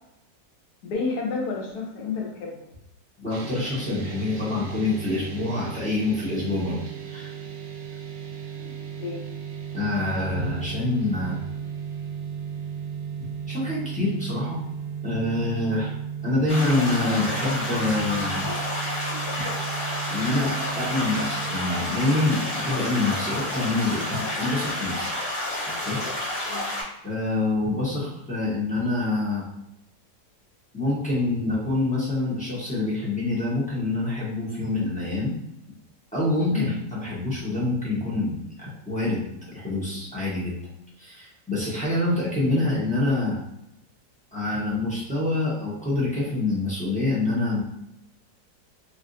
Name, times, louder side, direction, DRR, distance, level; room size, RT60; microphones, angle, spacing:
voice 1, 0.8-2.7 8.6-8.7 9.0-9.2 26.5-26.7 36.5-36.7, left 4 dB, 70° left, -1 dB, 1.2 m, -30 dB
voice 2, 3.2-6.8 7.1-7.3 9.7-11.4 13.5-14.6 15.0-15.9 16.2-18.5 20.1-25.1 25.8-26.0 27.0-29.4 30.7-35.3 36.1-36.7 37.0-40.5 41.0-43.4 44.3-47.6, left 2 dB, 10° left, -8 dB, 0.3 m, -26 dB
sound 1, 3.3-21.6, right 8 dB, 75° right, 1.0 m, -35 dB
sound 2, 16.5-26.8, left 1 dB, 35° left, 1.1 m, -30 dB
3.3 x 2.4 x 2.6 m, 0.84 s
omnidirectional pair, 1.9 m